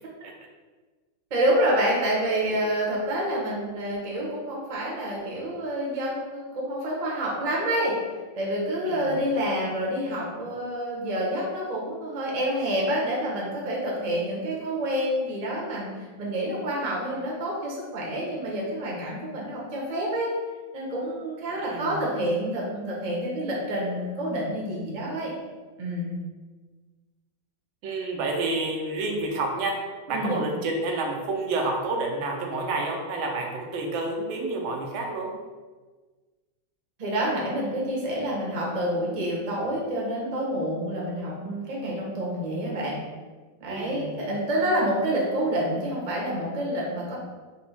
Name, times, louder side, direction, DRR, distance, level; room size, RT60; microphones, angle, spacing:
voice 1, 1.3-7.9 8.3-20.3 20.7-25.3 25.8-26.1 30.1-30.4 37.0-43.0 43.6-47.1, right 1 dB, 45° right, -4 dB, 0.5 m, -28 dB
voice 2, 21.5-22.0 27.8-29.8 30.1-35.3 43.7-44.2, right 2 dB, 90° right, 1 dB, 1.4 m, -29 dB
4.3 x 2.0 x 4.2 m, 1.3 s
omnidirectional pair, 2.1 m